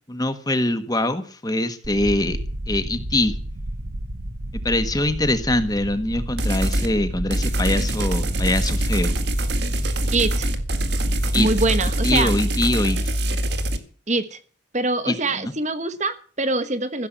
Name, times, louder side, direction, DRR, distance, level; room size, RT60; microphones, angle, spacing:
voice 1, 0.1-2.4 2.7-3.4 4.6-9.1 11.3-11.5 12.0-13.0 15.1-15.5, left 1 dB, 20° left, 9 dB, 1.4 m, -23 dB
sound 1, 1.8-12.4, right 1 dB, 75° right, 1.4 m, -31 dB
sound 2, 6.4-6.9 7.3-13.8, right 1 dB, 55° right, 1.8 m, -24 dB
voice 2, 10.1-10.5 11.3-12.3 14.1-14.4 14.7-17.1, right 2 dB, 35° right, 11 dB, 1.3 m, -24 dB
15.5 x 7.7 x 8.9 m, 0.43 s
head